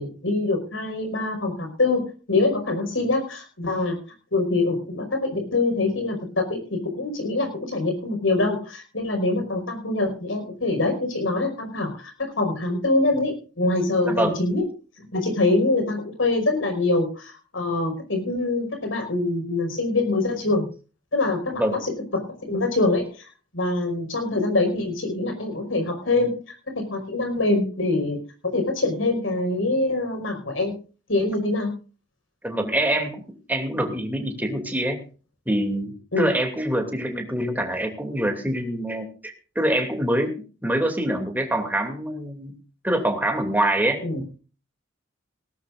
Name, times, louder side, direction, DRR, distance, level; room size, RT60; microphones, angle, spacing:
voice 1, 0.0-4.0 4.3-14.6 15.1-20.7 21.1-21.9 22.4-23.3 23.5-28.2 28.5-30.7 31.1-31.7 36.1-36.3 44.0-44.2, left 2 dB, 85° left, 4 dB, 5.3 m, -24 dB
voice 2, 14.0-14.3 21.6-21.8 32.4-33.2 33.5-35.0 35.5-42.5 42.8-44.0, right 1 dB, 10° right, 3 dB, 2.7 m, -25 dB
19.0 x 18.0 x 2.6 m, 0.36 s
head